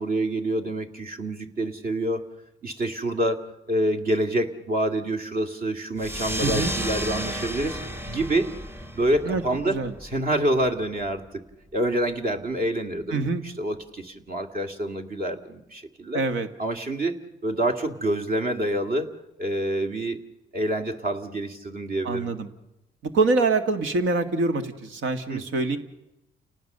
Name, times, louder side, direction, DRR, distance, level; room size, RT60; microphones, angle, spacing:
voice 1, 0.0-2.2 2.6-7.8 8.1-8.5 8.9-9.7 10.0-11.2 11.7-16.2 16.6-17.2 17.4-19.1 19.4-20.2 20.5-22.3 25.3-25.4, right 1 dB, 45° right, 5 dB, 2.1 m, -27 dB
sound 1, 6.0-11.1, equal, 10° right, 1.1 m, -33 dB
voice 2, 6.4-6.7 9.2-9.9 13.1-13.4 16.1-16.5 22.0-22.5 23.0-25.8, right 3 dB, 75° right, 7 dB, 1.8 m, -25 dB
29.5 x 18.5 x 6.7 m, 0.91 s
cardioid pair, 90°, 20 cm